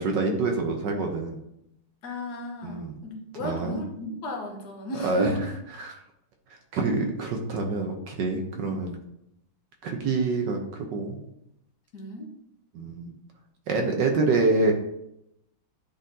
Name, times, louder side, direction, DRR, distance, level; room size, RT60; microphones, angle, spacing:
voice 1, 0.0-1.4 2.6-3.0 3.3-3.8 5.0-6.0 6.7-9.0 9.8-11.2 12.7-13.1 13.7-14.7, right 3 dB, 65° right, 3 dB, 1.3 m, -26 dB
voice 2, 2.0-5.4 8.5-8.7 11.9-12.3, equal, 55° left, 2 dB, 1.5 m, -34 dB
10.0 x 4.0 x 2.7 m, 0.79 s
omnidirectional pair, 2.4 m